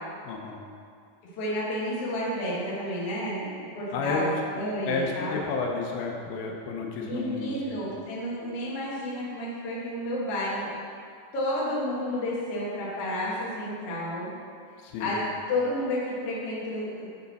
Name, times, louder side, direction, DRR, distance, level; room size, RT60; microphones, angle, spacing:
voice 1, 0.2-0.6 3.9-4.3 4.9-7.8 14.8-15.2, left 4 dB, 90° left, 1 dB, 2.6 m, -31 dB
voice 2, 1.4-3.5 3.7-5.4 7.0-10.7 11.3-14.3 15.0-15.2 15.5-17.1, left 1 dB, 55° left, -6 dB, 2.0 m, -31 dB
9.4 x 4.1 x 4.1 m, 2.3 s
omnidirectional pair, 4.1 m